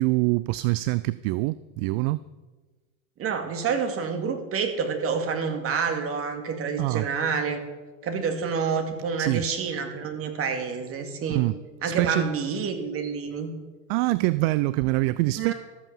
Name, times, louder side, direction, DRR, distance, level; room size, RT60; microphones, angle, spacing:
voice 1, 0.0-2.2 6.8-7.1 9.2-9.5 11.3-12.3 13.9-15.5, right 20 dB, 55° right, 0.4 m, -25 dB
voice 2, 3.2-7.6 8.0-11.5 11.8-13.5 15.4-15.5, right 5 dB, 40° right, 2.3 m, -28 dB
13.5 x 8.1 x 7.3 m
hypercardioid pair, 105°, 37 cm